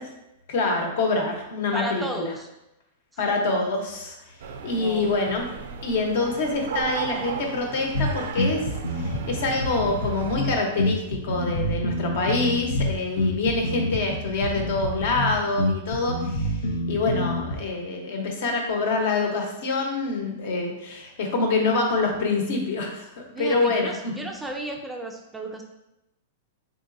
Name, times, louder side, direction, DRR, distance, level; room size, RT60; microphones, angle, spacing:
voice 1, 0.5-2.3 3.2-4.1 4.6-5.5 5.8-16.6 16.9-24.1, left 3 dB, 60° left, 2 dB, 0.9 m, -26 dB
voice 2, 1.7-2.5 3.1-3.2 4.7-5.1 23.3-25.6, right 1 dB, 5° right, 2 dB, 0.3 m, -33 dB
sound 1, 4.4-10.4, right 6 dB, 75° right, 0.4 m, -35 dB
sound 2, 7.9-17.5, left 1 dB, 85° left, 0.6 m, -27 dB
3.8 x 3.6 x 2.6 m, 0.89 s
supercardioid pair, 150°, 0 cm